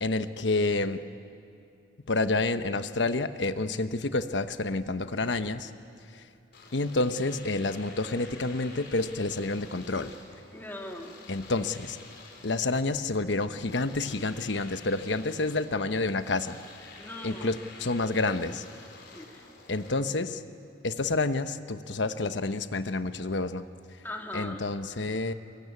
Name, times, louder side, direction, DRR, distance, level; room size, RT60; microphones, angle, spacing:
voice 1, 0.0-1.0 2.1-5.7 6.7-10.1 11.3-12.0 12.4-16.6 17.2-18.6 19.7-20.4 20.8-23.6 24.3-25.3, left 3 dB, 80° left, 10 dB, 1.1 m, -29 dB
Domestic sounds home sounds, 6.5-19.9, left 3 dB, 65° left, 4.7 m, -50 dB
voice 2, 10.5-11.4 16.9-17.5 19.1-19.6 24.0-24.7, left 1 dB, 10° left, 1 dB, 2.5 m, -40 dB
23.5 x 23.0 x 9.6 m, 2.5 s
head